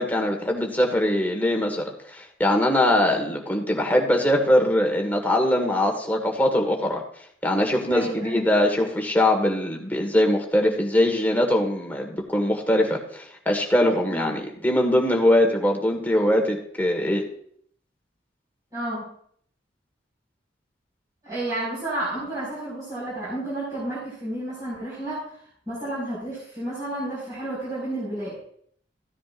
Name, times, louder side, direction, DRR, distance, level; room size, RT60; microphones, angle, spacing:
voice 1, 0.0-7.0 7.4-17.2, left 1 dB, 10° left, 1 dB, 1.7 m, -22 dB
voice 2, 7.9-8.5 14.1-14.3 18.7-19.2 21.2-25.3 25.7-28.4, right 1 dB, 20° right, -10 dB, 5.3 m, -31 dB
15.0 x 10.0 x 2.6 m, 0.63 s
head